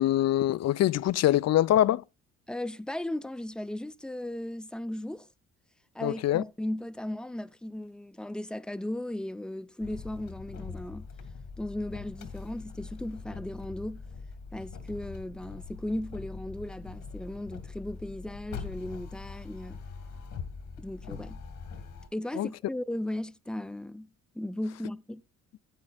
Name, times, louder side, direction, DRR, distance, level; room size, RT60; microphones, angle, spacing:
voice 1, 0.0-2.0 6.0-6.4 22.4-22.5, left 13 dB, 60° left, 0.5 m, -24 dB
voice 2, 2.5-5.3 5.9-11.1 11.6-14.1 14.5-19.8 20.8-21.4 22.1-24.1 24.3-25.2, left 1 dB, 5° left, 0.5 m, -36 dB
sound 1, 9.8-22.1, left 5 dB, 80° left, 2.0 m, -42 dB
17.0 x 8.8 x 2.4 m
cardioid pair, 90°, 30 cm